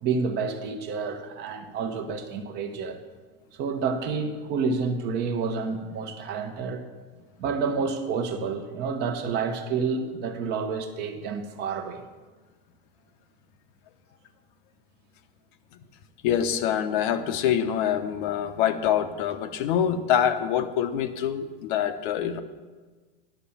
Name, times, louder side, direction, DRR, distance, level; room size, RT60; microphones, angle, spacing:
voice 1, 0.0-3.0 3.5-6.8 7.4-12.0, right 5 dB, 35° right, 7 dB, 1.0 m, -29 dB
voice 2, 16.2-22.4, left 9 dB, 55° left, 9 dB, 0.9 m, -25 dB
10.0 x 6.4 x 7.1 m, 1.4 s
supercardioid pair, 150°, 30 cm